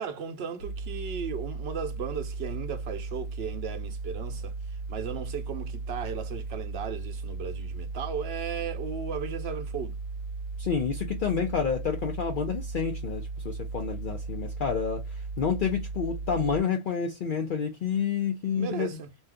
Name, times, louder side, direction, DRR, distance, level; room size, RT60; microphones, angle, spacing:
voice 1, 0.0-4.5 4.9-9.9 18.6-19.1, right 6 dB, 70° right, 0.9 m, -35 dB
sound 1, 0.6-16.6, right 3 dB, 90° left, 0.9 m, -36 dB
voice 2, 10.6-15.0 15.4-18.9, left 6 dB, 55° left, 0.7 m, -29 dB
2.7 x 2.3 x 3.5 m
omnidirectional pair, 1.1 m